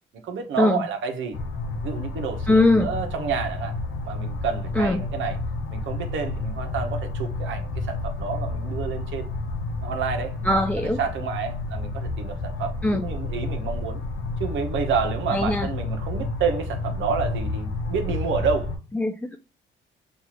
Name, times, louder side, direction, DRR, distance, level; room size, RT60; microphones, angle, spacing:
voice 1, 0.2-1.4 1.8-3.7 4.0-5.4 5.7-9.3 9.8-14.0 14.4-18.7, right 6 dB, 75° right, 1.1 m, -29 dB
sound 1, 1.3-18.8, left 2 dB, 70° left, 0.9 m, -30 dB
voice 2, 2.5-2.9 4.8-5.0 10.4-11.0 12.8-13.1 15.3-15.7 18.9-19.4, left 2 dB, 10° left, 0.3 m, -21 dB
5.5 x 2.6 x 3.0 m
cardioid pair, 90°, 20 cm